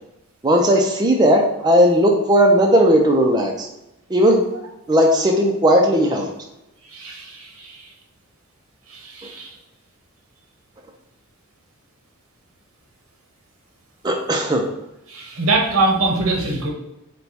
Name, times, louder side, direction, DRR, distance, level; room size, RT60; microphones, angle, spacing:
voice 1, 0.4-3.7 4.1-4.4 4.9-6.3 14.0-14.6, equal, 20° right, 1 dB, 0.4 m, -16 dB
voice 2, 6.9-7.8 9.0-9.5 15.1-16.7, right 2 dB, 90° right, 1 dB, 0.9 m, -22 dB
4.5 x 2.2 x 4.0 m, 0.90 s
head